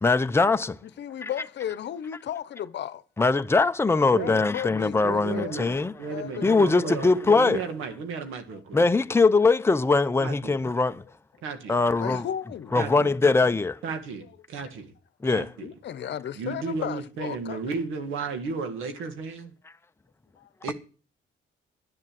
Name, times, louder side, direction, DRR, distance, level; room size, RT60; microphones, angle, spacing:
voice 1, 0.0-0.8 1.2-1.3 3.2-5.9 6.4-7.6 8.7-11.0 11.7-12.3 12.7-13.8 15.2-15.5, left 3 dB, 10° left, 0.6 m, -22 dB
voice 2, 0.8-3.0 4.2-5.7 6.0-7.0 12.0-12.8 15.6-17.8 20.4-20.5, left 10 dB, 60° left, 0.9 m, -35 dB
voice 3, 5.0-8.8 10.2-10.6 11.4-11.8 12.8-13.1 13.8-14.9 15.2-15.7 16.4-19.5 20.6-20.7, right 5 dB, 90° right, 1.8 m, -34 dB
11.0 x 7.3 x 7.7 m
cardioid pair, 90°, 20 cm